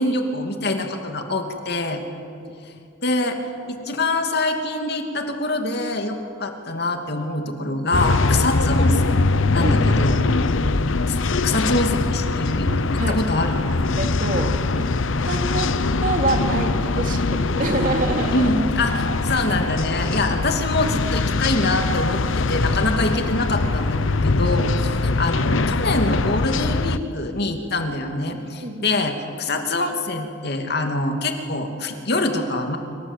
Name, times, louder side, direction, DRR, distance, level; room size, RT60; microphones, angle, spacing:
voice 1, 0.0-2.0 3.0-3.4 3.7-9.3 9.5-10.3 11.1-11.2 11.4-12.7 13.1-13.8 18.3-32.8, left 2 dB, 55° left, 4 dB, 2.7 m, -24 dB
sound 1, 7.9-27.0, left 3 dB, 80° left, 0.9 m, -22 dB
voice 2, 9.6-10.2 10.6-10.7 13.0-13.2 14.0-14.9 15.2-15.7 16.0-18.5 28.6-28.9, right 2 dB, 45° right, 4 dB, 2.6 m, -26 dB
26.5 x 25.5 x 8.3 m, 2.4 s
head